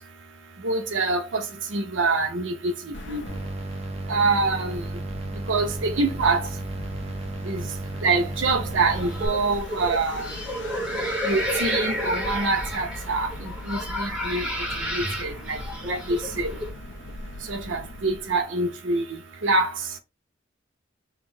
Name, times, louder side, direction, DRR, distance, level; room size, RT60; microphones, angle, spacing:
voice 1, 0.6-1.4 1.7-2.7 3.1-3.2 4.1-4.8 5.5-6.5 7.5-7.6 8.0-10.3 11.3-13.3 13.7-14.5 14.9-15.6 15.8-16.5 17.5-19.0 19.4-19.7, right 3 dB, 80° right, 0.8 m, -25 dB
sound 1, 2.9-18.4, left 2 dB, 65° left, 0.6 m, -41 dB
sound 2, 3.3-9.3, right 2 dB, 35° right, 0.8 m, -33 dB
sound 3, 8.9-16.7, equal, 5° right, 0.9 m, -31 dB
3.8 x 2.0 x 4.4 m
head